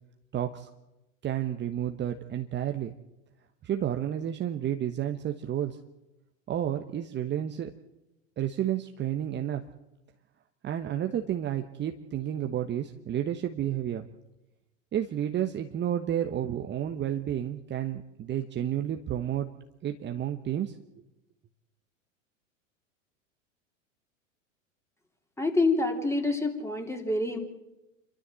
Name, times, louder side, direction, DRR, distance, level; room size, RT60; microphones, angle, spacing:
voice 1, 0.3-0.7 1.2-2.9 3.6-5.8 6.5-7.7 8.4-9.6 10.6-14.1 14.9-19.5 19.8-21.0, right 10 dB, 25° right, 5 dB, 1.1 m, -31 dB
voice 2, 25.4-27.4, left 2 dB, 5° left, 4 dB, 3.4 m, -27 dB
27.5 x 13.0 x 7.6 m, 0.99 s
hypercardioid pair, 95°, 39 cm